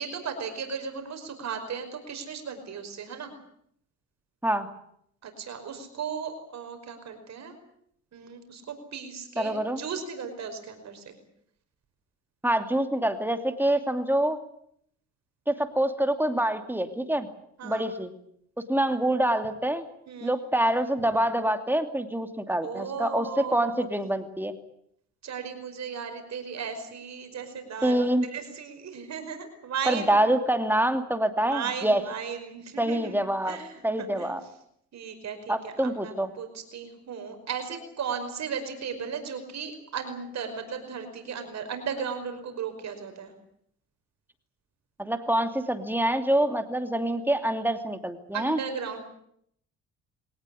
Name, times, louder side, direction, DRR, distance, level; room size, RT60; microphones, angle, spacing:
voice 1, 0.0-3.3 5.2-7.6 8.1-11.2 17.6-17.9 20.1-20.3 22.6-23.9 25.2-30.4 31.4-33.2 33.5-34.4 34.9-43.3 48.3-49.0, right 6 dB, 60° right, 6 dB, 5.3 m, -36 dB
voice 2, 9.4-9.8 12.4-14.4 15.5-17.3 17.6-18.1 18.7-19.8 20.2-24.5 27.8-28.2 29.9-32.0 32.8-33.6 33.8-34.4 35.5-36.3 45.0-48.6, right 1 dB, 5° right, 7 dB, 2.7 m, -26 dB
22.5 x 19.0 x 10.0 m, 0.71 s
cardioid pair, 90°, 30 cm